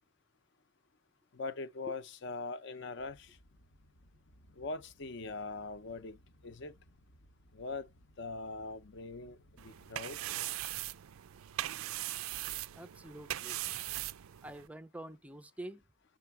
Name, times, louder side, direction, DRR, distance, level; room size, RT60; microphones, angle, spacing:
voice 1, 1.3-3.3 4.6-6.2 6.4-6.7 7.5-7.9 8.2-10.2, left 3 dB, 55° left, 0.6 m, -41 dB
sound 1, 3.0-10.3, equal, 80° left, 1.0 m, -63 dB
sound 2, 9.6-14.7, right 14 dB, 80° right, 0.4 m, -40 dB
voice 2, 12.7-13.8 14.4-15.8, right 1 dB, 5° right, 0.4 m, -47 dB
7.8 x 6.0 x 4.6 m
head